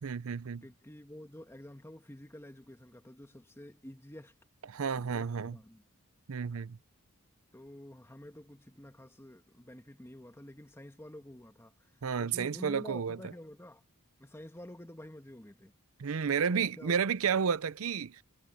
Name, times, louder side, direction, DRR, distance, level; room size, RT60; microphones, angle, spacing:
voice 1, 0.0-0.6 4.7-5.6 6.3-6.8 12.0-13.2 16.0-18.2, right 6 dB, 70° right, 0.5 m, -31 dB
voice 2, 0.6-4.3 4.9-5.8 7.5-11.9 12.2-13.8 14.2-15.7 16.2-17.0, left 1 dB, 10° left, 1.4 m, -49 dB
head